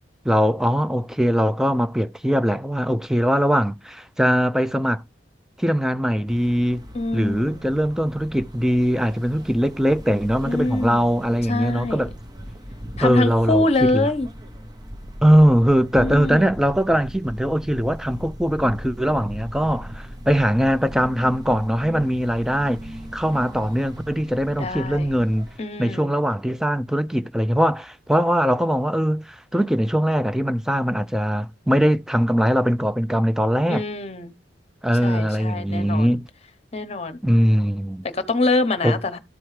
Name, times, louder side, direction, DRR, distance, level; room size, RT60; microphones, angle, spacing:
voice 1, 0.2-5.0 5.6-6.9 7.1-12.1 13.0-14.1 15.2-22.9 23.1-25.5 25.8-33.8 34.8-36.2 37.2-38.0 38.8-39.0, equal, 5° right, 0.3 m, -21 dB
sound 1, 6.3-25.6, equal, 20° right, 0.7 m, -38 dB
voice 2, 6.9-7.6 10.4-11.1 11.5-12.1 13.0-14.3 16.0-16.5 24.5-25.1 25.6-26.1 33.7-34.3 35.0-36.2 36.7-37.2 38.1-39.2, left 2 dB, 35° left, 0.9 m, -24 dB
13.0 x 4.5 x 3.2 m
head